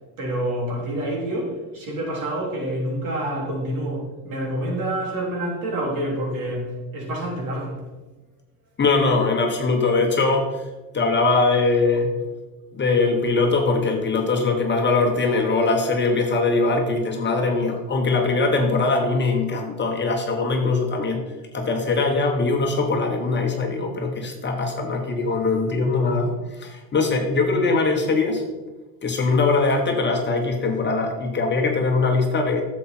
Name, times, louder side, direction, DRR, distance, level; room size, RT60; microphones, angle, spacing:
voice 1, 0.2-7.8, right 1 dB, 50° right, -1 dB, 3.6 m, -27 dB
voice 2, 8.8-10.6 10.9-12.1 12.7-21.2 21.5-28.4 29.0-32.6, left 3 dB, 25° left, 2 dB, 1.4 m, -21 dB
9.9 x 7.4 x 4.4 m, 1.1 s
supercardioid pair, 115°, 42 cm